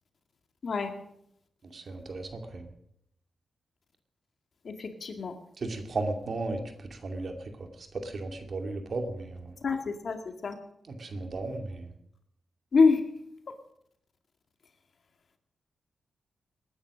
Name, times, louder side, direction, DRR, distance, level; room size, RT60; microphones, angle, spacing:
voice 1, 1.7-2.7 5.6-6.6 6.9-9.5 10.9-11.9, right 3 dB, 55° right, 5 dB, 2.4 m, -35 dB
voice 2, 4.6-5.4 9.6-10.2 10.4-10.6 12.7-13.0, left 4 dB, 60° left, 6 dB, 2.1 m, -25 dB
19.5 x 10.0 x 6.4 m, 0.76 s
cardioid pair, 75°, 0 cm